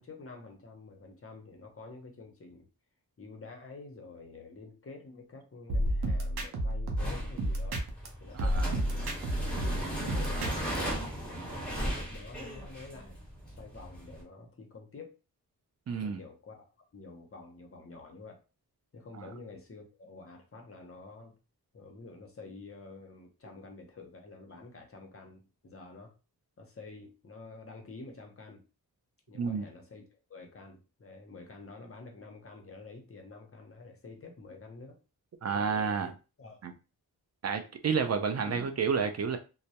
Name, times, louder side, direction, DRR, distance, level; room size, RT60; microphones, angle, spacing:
voice 1, 0.0-2.7 3.2-7.8 8.2-8.8 9.3-13.1 13.5-15.2 16.0-16.6 16.9-18.4 18.9-21.4 21.7-26.1 26.6-28.6 29.3-35.0 35.5-36.0 36.4-36.6 38.4-38.7, left 3 dB, 35° left, 0.7 m, -49 dB
sound 1, 5.7-8.1 8.4-10.8, right 1 dB, 85° right, 0.6 m, -31 dB
sound 2, 7.0-14.2, equal, 5° left, 1.0 m, -37 dB
voice 2, 8.3-8.7 15.9-16.2 19.2-19.3 29.3-29.6 35.4-36.1 36.6-36.7 37.4-39.4, right 6 dB, 45° right, 0.4 m, -30 dB
2.2 x 2.0 x 2.7 m
cardioid pair, 65°, 38 cm